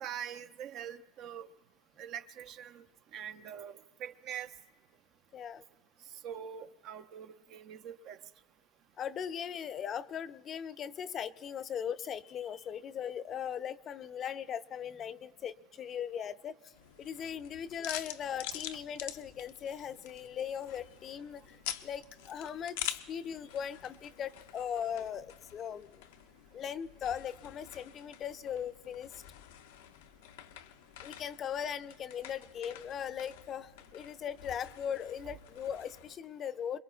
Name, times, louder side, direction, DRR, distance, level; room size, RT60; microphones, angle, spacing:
voice 1, 0.0-1.5 2.0-2.8 3.1-4.5 6.2-8.2, right 9 dB, 55° right, 0.6 m, -43 dB
voice 2, 5.3-5.6 9.0-16.6 17.0-26.0 26.5-29.1 31.0-36.8, left 8 dB, 40° left, 0.5 m, -39 dB
sound 1, 16.7-36.2, left 11 dB, 85° left, 0.6 m, -47 dB
27.0 x 21.5 x 2.4 m
supercardioid pair, 110°, 0 cm